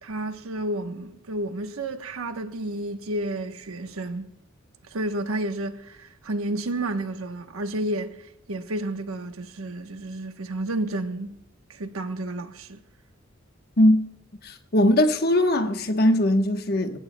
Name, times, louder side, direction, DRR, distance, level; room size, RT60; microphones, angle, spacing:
voice 1, 0.0-4.3 4.8-11.4 11.7-12.8, right 1 dB, 85° right, 1.0 m, -31 dB
voice 2, 14.4-17.0, left 1 dB, 50° left, 1.1 m, -20 dB
25.5 x 16.5 x 2.2 m
head